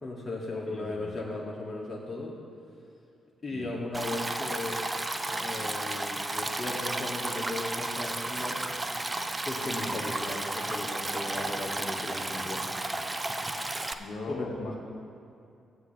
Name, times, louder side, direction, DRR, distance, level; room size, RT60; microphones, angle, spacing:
voice 1, 0.0-2.3 3.4-8.6 9.5-12.6 14.3-14.5, left 2 dB, 40° left, -4 dB, 1.7 m, -36 dB
voice 2, 0.7-1.1 3.5-3.7 9.8-10.0 14.0-14.8, left 3 dB, 60° left, -1 dB, 2.0 m, -40 dB
Stream, 3.9-13.9, right 2 dB, 25° right, 0.7 m, -33 dB
16.0 x 8.1 x 2.9 m, 2.6 s
hypercardioid pair, 40°, 0 cm